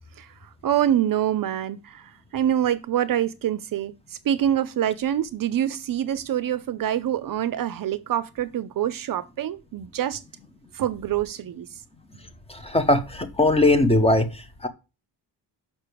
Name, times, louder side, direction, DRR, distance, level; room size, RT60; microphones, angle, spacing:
voice 1, 0.6-3.9 4.2-10.2 10.7-11.7, right 11 dB, 55° right, 0.5 m, -25 dB
voice 2, 12.5-14.7, left 2 dB, 15° left, 0.7 m, -20 dB
6.1 x 5.7 x 6.7 m
wide cardioid pair, 170°, 42 cm